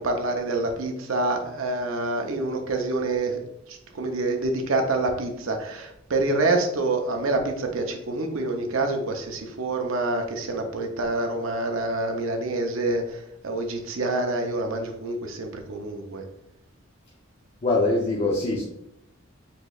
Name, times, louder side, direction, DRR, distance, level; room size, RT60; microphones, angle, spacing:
voice 1, 0.0-3.4 3.7-16.2, right 2 dB, 70° right, 3 dB, 0.6 m, -27 dB
voice 2, 17.6-18.6, left 2 dB, 35° left, -3 dB, 0.5 m, -23 dB
4.5 x 3.0 x 2.3 m, 0.79 s
head